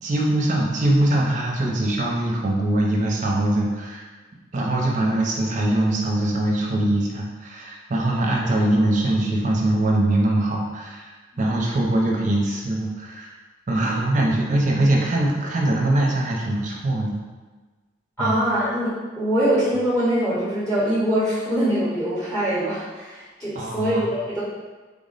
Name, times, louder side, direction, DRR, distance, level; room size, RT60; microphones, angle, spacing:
voice 1, 0.0-4.1 4.5-13.4 13.7-17.2 18.2-18.4 23.5-24.0, right 1 dB, 40° right, -1 dB, 0.5 m, -22 dB
voice 2, 18.2-24.4, right 1 dB, 15° left, -11 dB, 0.8 m, -23 dB
3.4 x 2.1 x 3.8 m, 1.3 s
head